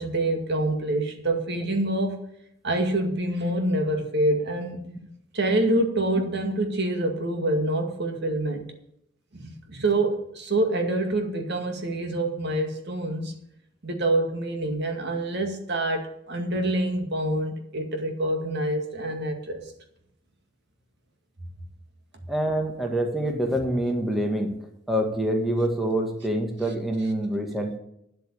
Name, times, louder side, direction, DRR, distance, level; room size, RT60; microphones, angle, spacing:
voice 1, 0.0-2.2 2.6-4.9 5.3-8.7 9.3-13.3 13.8-19.6, right 1 dB, 60° right, 4 dB, 2.1 m, -26 dB
voice 2, 22.3-24.5 24.9-27.8, right 1 dB, ahead, 2 dB, 1.9 m, -26 dB
10.0 x 8.2 x 8.5 m, 0.75 s
head